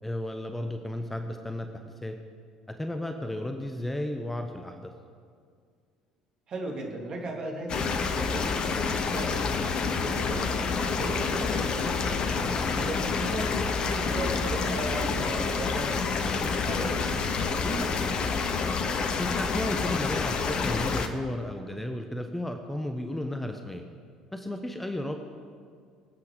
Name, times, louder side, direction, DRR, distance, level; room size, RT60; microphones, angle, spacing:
voice 1, 0.0-2.2 2.7-4.9 14.3-14.4 16.6-16.8 19.2-23.8 24.3-25.1, left 1 dB, 10° left, 6 dB, 1.1 m, -34 dB
voice 2, 6.5-10.6 11.0-15.9 16.2-18.2, right 2 dB, 40° right, -1 dB, 3.2 m, -37 dB
sound 1, 7.7-21.1, left 5 dB, 45° left, 1.2 m, -28 dB
25.0 x 8.4 x 5.2 m, 2.1 s
figure-of-eight pair, 60°, 2 cm